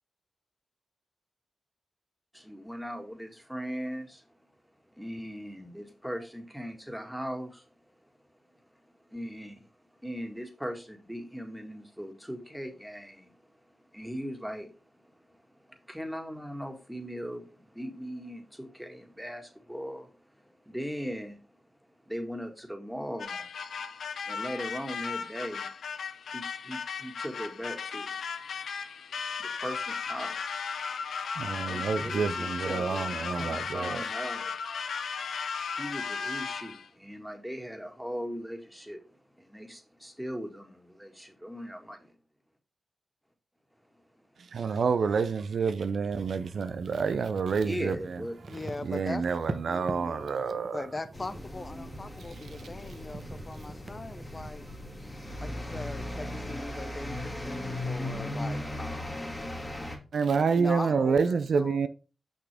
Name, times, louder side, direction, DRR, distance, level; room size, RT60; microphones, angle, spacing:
voice 1, 2.3-4.0 4.8-23.5 24.0-25.7 26.3-30.6 31.4-34.6 35.7-42.1 43.8-44.6 47.5-48.4, equal, 5° right, 2.0 m, -40 dB
sound 1, 23.2-36.9, left 6 dB, 80° left, 0.6 m, -36 dB
voice 2, 31.4-34.1 44.4-48.2 48.8-50.9 60.1-61.9, right 5 dB, 75° right, 0.5 m, -28 dB
sound 2, 46.1-54.5, right 3 dB, 45° right, 0.9 m, -44 dB
voice 3, 48.5-49.2 49.7-50.4 50.7-54.7 55.4-59.2 60.5-61.9, left 2 dB, 40° left, 0.6 m, -40 dB
sound 3, 51.1-60.0, left 1 dB, 20° left, 2.2 m, -37 dB
6.3 x 5.9 x 3.4 m
supercardioid pair, 45°, 0 cm